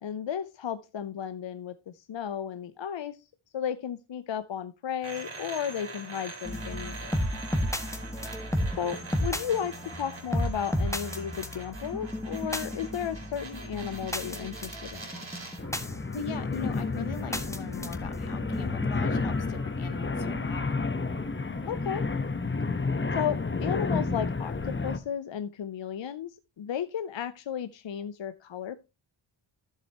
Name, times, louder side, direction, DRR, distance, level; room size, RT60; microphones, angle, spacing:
voice 1, 0.0-3.2 3.5-7.2 8.8-15.1 21.7-22.0 23.1-26.3 26.6-28.8, left 8 dB, 65° left, 0.7 m, -34 dB
sound 1, 5.0-15.7, right 3 dB, 70° right, 4.0 m, -44 dB
sound 2, 6.4-22.9, equal, 5° left, 1.5 m, -35 dB
sound 3, 15.6-25.0, left 3 dB, 25° left, 0.9 m, -31 dB
voice 2, 16.1-20.8, left 6 dB, 80° left, 1.2 m, -40 dB
12.5 x 7.5 x 2.9 m
cardioid pair, 60°, 49 cm